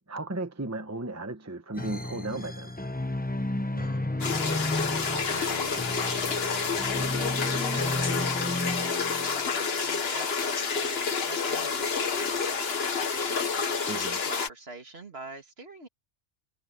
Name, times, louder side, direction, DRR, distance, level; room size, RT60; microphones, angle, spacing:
voice 1, 0.1-2.8 13.9-14.2, right 2 dB, 15° right, 1.0 m, -35 dB
sound 1, 1.8-9.4, left 1 dB, 10° left, 0.8 m, -32 dB
voice 2, 3.6-15.9, right 2 dB, 55° right, 2.6 m, -45 dB
sound 2, 4.2-14.5, left 5 dB, 55° left, 1.5 m, -29 dB
omnidirectional pair, 1.3 m